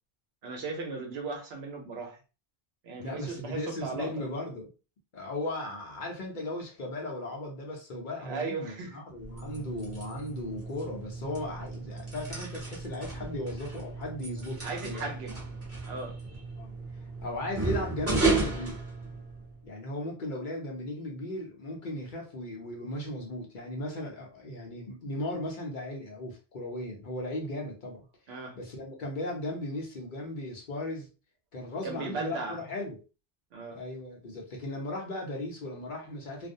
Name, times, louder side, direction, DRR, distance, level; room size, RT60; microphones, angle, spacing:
voice 1, 0.4-2.2 2.8-4.3 8.2-9.0 14.6-15.4 15.8-16.4 28.3-28.6 31.8-32.6 33.5-33.8, right 4 dB, 75° right, 0.9 m, -37 dB
voice 2, 3.0-4.7 5.1-15.1 16.6-16.7 17.2-18.8 19.6-28.0 28.6-31.1 31.5-33.0 33.8-36.5, left 1 dB, 55° left, 0.8 m, -36 dB
sound 1, 9.1-19.6, right 3 dB, 15° right, 0.7 m, -34 dB
2.4 x 2.0 x 2.6 m
omnidirectional pair, 1.1 m